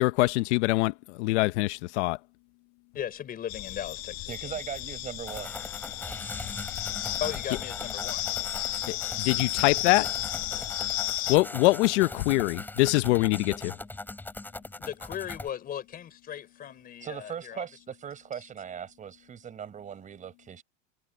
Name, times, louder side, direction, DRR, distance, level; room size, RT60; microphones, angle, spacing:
voice 1, 0.0-2.2 8.9-10.1 11.3-13.8, left 21 dB, 85° left, 0.7 m, -24 dB
voice 2, 2.9-4.6 7.2-8.3 14.8-17.7, left 9 dB, 25° left, 4.4 m, -37 dB
sound 1, 3.5-11.4, left 18 dB, 45° left, 1.6 m, -33 dB
voice 3, 4.3-5.5 17.0-20.6, right 8 dB, 20° right, 4.8 m, -39 dB
sound 2, 5.3-15.5, left 2 dB, 5° left, 5.5 m, -40 dB
cardioid pair, 165°, 34 cm